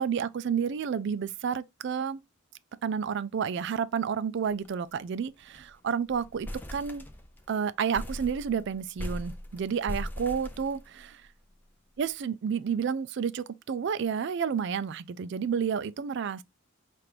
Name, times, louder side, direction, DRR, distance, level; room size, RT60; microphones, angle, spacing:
voice 1, 0.0-2.2 2.8-7.0 7.5-10.8 12.0-16.4, right 7 dB, 60° right, 0.3 m, -30 dB
sound 1, 4.4-4.7 5.0-5.1 5.4-5.7 6.1-7.5 7.9-11.2, equal, 10° left, 0.4 m, -39 dB
5.8 x 2.5 x 3.3 m
head